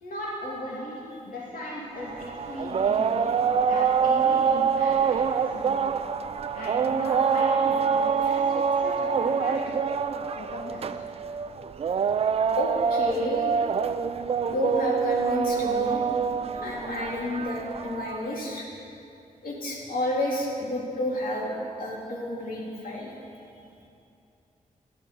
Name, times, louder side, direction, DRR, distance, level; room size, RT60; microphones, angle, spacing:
voice 1, 0.0-3.3 3.6-5.0 5.3-5.8 6.5-9.8 10.3-11.1, left 1 dB, 70° left, -6 dB, 2.5 m, -38 dB
sound 1, 2.0-18.3, right 6 dB, 45° right, 0.4 m, -25 dB
voice 2, 12.5-13.6 14.5-16.0 16.6-18.7 19.4-23.1, left 1 dB, 90° left, -4 dB, 3.0 m, -30 dB
13.5 x 12.0 x 6.9 m, 2.7 s
wide cardioid pair, 160°, 14 cm